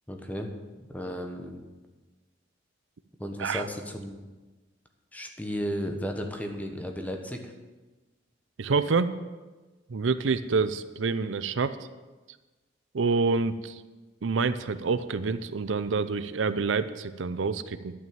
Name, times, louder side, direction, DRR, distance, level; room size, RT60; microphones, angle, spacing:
voice 1, 0.1-0.5 0.9-1.6 3.2-4.2 5.1-7.5, equal, 10° left, 4 dB, 1.2 m, -34 dB
voice 2, 8.6-9.2 9.9-11.8 12.9-13.8 14.2-17.9, right 4 dB, 85° right, 13 dB, 0.6 m, -27 dB
11.0 x 6.3 x 8.9 m, 1.2 s
head